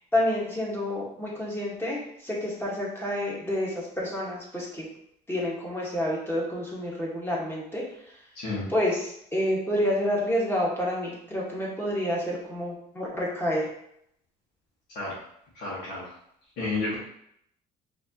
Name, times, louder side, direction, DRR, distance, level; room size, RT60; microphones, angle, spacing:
voice 1, 0.1-4.9 5.3-8.2 8.7-13.7, left 1 dB, 15° left, -4 dB, 1.2 m, -29 dB
voice 2, 8.3-8.7 14.9-15.1 15.5-16.1 16.6-17.0, left 3 dB, 75° left, -9 dB, 1.3 m, -31 dB
4.1 x 2.7 x 2.7 m, 0.72 s
cardioid pair, 110°, 17 cm